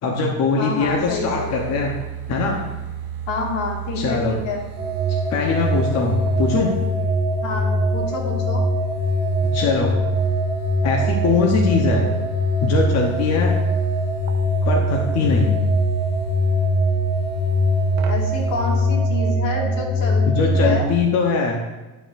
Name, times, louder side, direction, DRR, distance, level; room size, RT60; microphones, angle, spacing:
voice 1, 0.0-1.9 2.3-2.6 4.0-4.4 5.3-6.7 9.5-10.1 10.8-12.1 12.6-13.6 14.6-15.5 20.3-21.6, left 3 dB, 35° left, -1 dB, 1.0 m, -21 dB
voice 2, 0.6-1.9 3.3-4.6 7.4-8.6 18.1-20.9, left 3 dB, 70° left, -1 dB, 2.2 m, -28 dB
sound 1, 0.8-18.9, right 8 dB, 55° right, 0.9 m, -37 dB
sound 2, 4.8-20.9, equal, 15° right, 1.3 m, -21 dB
10.5 x 6.8 x 2.6 m, 1.2 s
cardioid pair, 155°, 46 cm